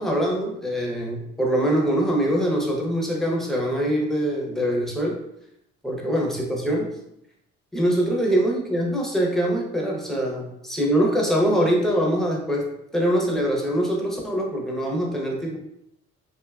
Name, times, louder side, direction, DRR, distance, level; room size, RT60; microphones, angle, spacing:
voice 1, 0.0-5.2 5.8-6.9 7.7-15.6, equal, ahead, -1 dB, 0.5 m, -23 dB
2.6 x 2.2 x 2.3 m, 0.78 s
cardioid pair, 90°, 30 cm